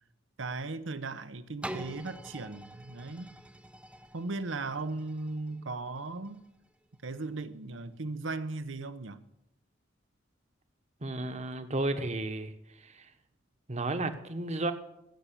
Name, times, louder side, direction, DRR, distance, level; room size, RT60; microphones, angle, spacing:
voice 1, 0.4-3.3 4.1-6.4 7.0-9.2, right 3 dB, 75° right, 12 dB, 0.9 m, -37 dB
sound 1, 1.6-7.4 7.9-8.0, right 1 dB, 5° right, 0.7 m, -46 dB
voice 2, 11.0-12.5 12.8-13.1 13.7-14.7, right 2 dB, 35° right, 9 dB, 1.2 m, -33 dB
16.0 x 7.6 x 8.4 m, 0.82 s
head